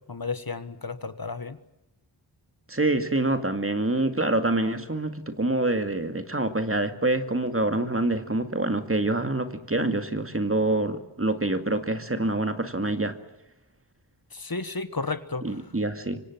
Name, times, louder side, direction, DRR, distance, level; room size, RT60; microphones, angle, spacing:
voice 1, 0.1-1.6 14.3-15.5, left 4 dB, 50° left, 1.5 m, -32 dB
voice 2, 2.7-13.2 15.4-16.2, right 2 dB, 30° right, 2.2 m, -26 dB
26.0 x 25.0 x 7.4 m
wide cardioid pair, 60°, 45 cm